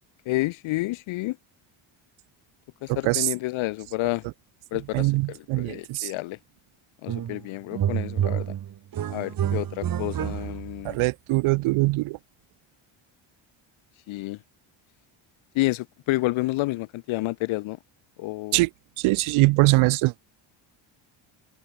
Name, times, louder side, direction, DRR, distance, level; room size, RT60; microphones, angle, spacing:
voice 1, 0.3-1.4 2.8-4.2 4.7-6.4 7.0-8.4 9.1-11.0 14.1-14.4 15.5-17.8 18.2-18.6, left 20 dB, 70° left, 0.7 m, -29 dB
voice 2, 2.9-3.3 4.9-6.1 10.8-12.2 18.5-18.7 19.0-20.1, right 21 dB, 75° right, 0.6 m, -22 dB
sound 1, 7.1-7.5 7.7-10.8, right 10 dB, 40° right, 1.4 m, -28 dB
cardioid pair, 135°, 50 cm